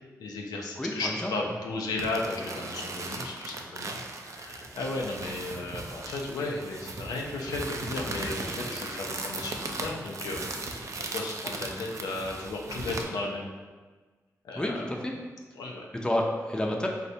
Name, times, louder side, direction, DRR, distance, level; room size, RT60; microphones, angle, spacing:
voice 1, 0.0-10.7 11.1-13.5 14.4-14.9 15.6-15.9, left 2 dB, 90° left, 0 dB, 0.4 m, -35 dB
voice 2, 0.8-1.3 14.5-15.1 16.0-16.9, left 1 dB, 15° left, 0 dB, 0.5 m, -29 dB
sound 1, 2.0-13.0, right 2 dB, 55° right, 0.4 m, -37 dB
4.1 x 2.1 x 2.7 m, 1.4 s
cardioid pair, 45°, 6 cm